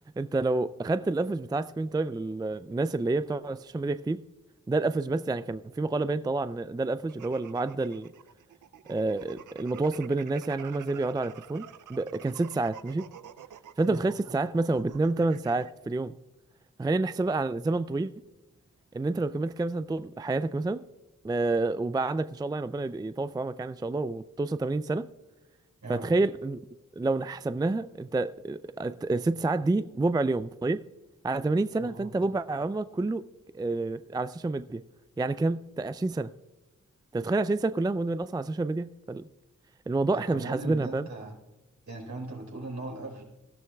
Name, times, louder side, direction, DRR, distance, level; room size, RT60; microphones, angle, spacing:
voice 1, 0.2-4.2 4.7-8.1 8.9-13.1 13.8-16.2 16.8-18.1 18.9-20.8 21.2-25.1 25.9-26.6 26.9-30.8 31.2-33.2 33.5-34.8 35.2-36.3 37.1-39.3 39.9-41.0, right 2 dB, 15° right, 0.4 m, -28 dB
sound 1, 7.1-15.7, right 9 dB, 80° right, 0.6 m, -48 dB
voice 2, 25.8-26.1 31.8-32.1 40.1-41.4 41.9-43.2, right 2 dB, 65° right, 4.3 m, -38 dB
19.0 x 12.5 x 2.3 m
cardioid pair, 45°, 31 cm